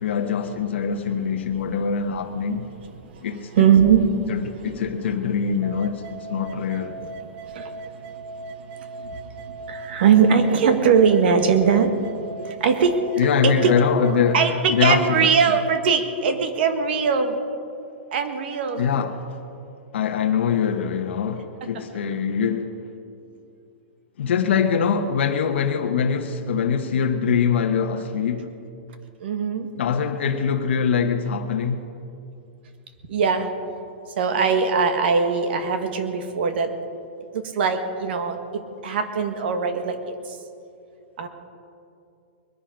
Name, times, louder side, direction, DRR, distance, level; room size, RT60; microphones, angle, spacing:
voice 1, 0.0-2.7 3.2-3.7 4.3-7.0 13.2-15.3 18.8-19.4 19.9-22.7 24.2-28.5 29.7-31.9, left 6 dB, 75° left, 1.1 m, -23 dB
voice 2, 3.6-4.0 7.5-8.1 8.8-11.9 12.4-13.0 13.4-13.8 14.3-17.4 18.1-18.8 29.2-29.7 33.1-33.5 34.2-36.7 37.3-40.0 41.2-41.3, right 6 dB, 60° right, 1.6 m, -21 dB
sound 1, 5.6-15.6, right 3 dB, 35° right, 1.0 m, -38 dB
21.5 x 10.5 x 5.2 m
hypercardioid pair, 160°, 6 cm